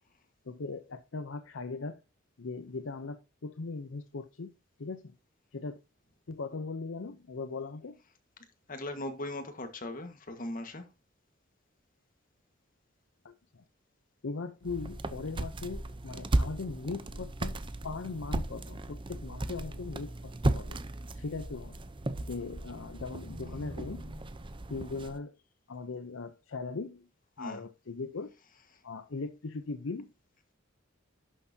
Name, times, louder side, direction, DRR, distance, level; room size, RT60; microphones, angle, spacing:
voice 1, 0.5-2.0 2.4-4.5 4.8-5.1 5.5-5.8 6.3-8.0 13.2-13.6 14.2-17.6 17.8-20.8 21.2-21.8 22.2-24.1 24.7-25.4 25.7-27.1 27.4-28.3 28.8-30.1, left 3 dB, 75° left, 0.7 m, -39 dB
voice 2, 8.7-10.9 27.4-27.6, left 1 dB, 45° left, 1.6 m, -39 dB
sound 1, 14.6-25.2, right 1 dB, 25° right, 0.7 m, -35 dB
11.0 x 6.5 x 2.8 m
head